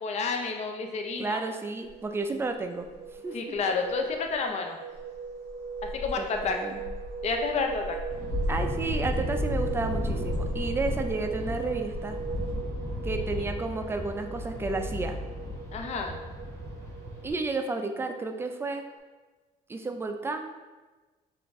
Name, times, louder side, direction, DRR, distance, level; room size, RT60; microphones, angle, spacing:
voice 1, 0.0-1.4 3.3-4.8 5.9-6.6 7.2-8.0 15.7-16.2, left 4 dB, 40° left, 3 dB, 0.5 m, -30 dB
voice 2, 1.2-2.9 3.2-3.6 6.2-6.8 8.5-12.2 13.0-15.2 17.2-18.9 19.7-20.6, right 3 dB, 15° right, 5 dB, 0.4 m, -32 dB
sound 1, 1.4-19.0, right 6 dB, 65° right, 0.7 m, -40 dB
sound 2, 1.8-1.9 2.8-2.9 3.5-3.6 3.8-4.3 4.9-12.5, left 2 dB, 80° left, 0.8 m, -37 dB
sound 3, 8.1-17.3, equal, 15° left, 1.0 m, -35 dB
5.8 x 2.5 x 3.5 m, 1.2 s
cardioid pair, 110°, 17 cm